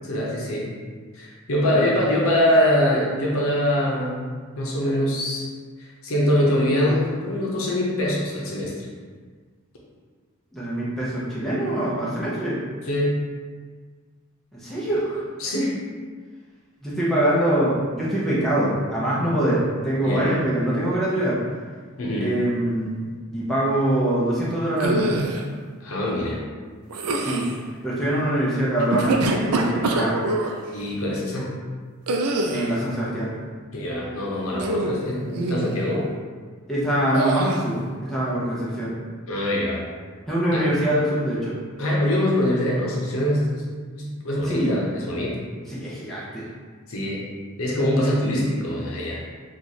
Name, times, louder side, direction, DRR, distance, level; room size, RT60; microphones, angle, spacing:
voice 1, 0.0-0.7 1.1-4.3 4.6-5.5 6.0-8.7 12.9-13.1 15.4-15.7 20.0-20.3 22.0-22.3 25.8-26.4 30.7-31.5 33.7-36.1 39.3-39.8 40.5-40.7 41.8-43.7 43.9-45.4 46.9-47.2 47.6-49.2, left 1 dB, 70° left, -4 dB, 0.8 m, -23 dB
voice 2, 1.6-1.9 10.5-12.6 14.5-15.2 16.8-21.4 22.2-25.1 27.1-27.5 27.8-30.2 32.5-33.3 36.7-38.9 40.3-41.6 44.4-44.7 45.7-46.4, right 1 dB, ahead, -8 dB, 0.6 m, -24 dB
sound 1, 24.8-25.4 26.9-27.6 28.8-30.5 32.1-32.8 34.5-35.0 35.4-35.7 37.1-37.6, right 2 dB, 90° right, 0.4 m, -25 dB
3.0 x 2.4 x 4.0 m, 1.6 s
head